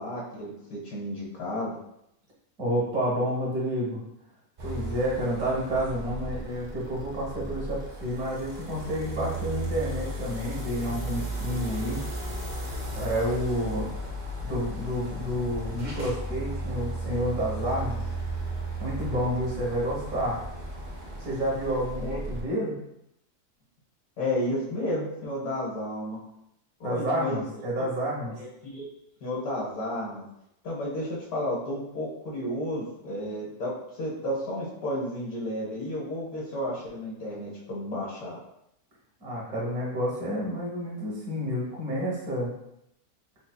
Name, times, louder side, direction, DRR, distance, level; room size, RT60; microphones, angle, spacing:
voice 1, 0.0-1.8 22.0-22.2 24.2-26.2 26.8-27.4 27.8-27.9 28.4-28.8 29.2-30.2 30.6-38.4, left 1 dB, 70° left, -6 dB, 1.6 m, -32 dB
voice 2, 2.6-4.0 4.6-12.0 12.9-13.9 14.4-18.0 18.8-20.4 21.2-22.7 26.8-28.3 39.2-42.5, equal, 65° right, -4 dB, 1.7 m, -29 dB
sound 1, 4.6-22.4, right 1 dB, 85° right, 0.4 m, -35 dB
4.1 x 2.7 x 2.3 m, 0.80 s
omnidirectional pair, 1.7 m